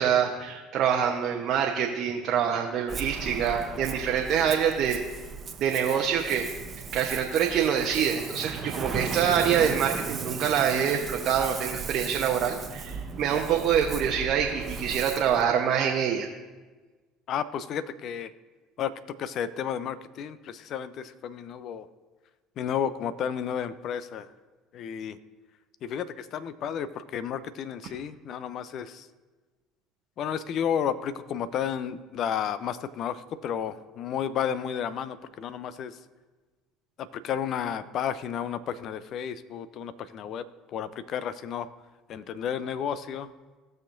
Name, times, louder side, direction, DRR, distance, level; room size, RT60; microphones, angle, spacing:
voice 1, 0.0-5.0 5.6-6.5 6.9-16.3, right 8 dB, 55° right, 1 dB, 0.9 m, -25 dB
Ocean, 2.9-15.4, right 5 dB, 35° right, 1.1 m, -36 dB
voice 2, 17.3-18.3 18.8-18.9 19.2-21.9 22.6-24.3 24.7-25.2 25.8-29.1 30.2-36.0 37.0-40.5 40.7-41.7 42.1-43.3, left 8 dB, 55° left, 14 dB, 0.5 m, -32 dB
17.0 x 6.5 x 2.6 m, 1.3 s
hypercardioid pair, 65°, 0 cm